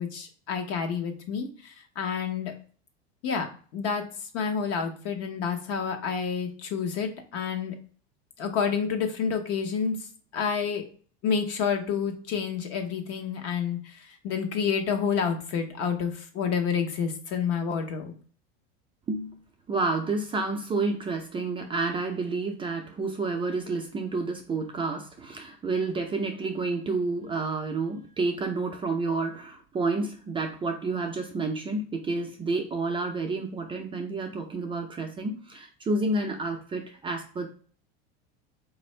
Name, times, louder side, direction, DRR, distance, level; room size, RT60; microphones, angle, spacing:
voice 1, 0.0-2.5 3.2-4.0 4.3-7.8 8.4-10.0 10.3-10.8 11.2-18.1, left 6 dB, 50° left, 5 dB, 0.9 m, -29 dB
voice 2, 19.7-37.5, right 3 dB, 15° right, 2 dB, 0.4 m, -30 dB
4.1 x 2.6 x 3.1 m, 0.42 s
supercardioid pair, 125°, 30 cm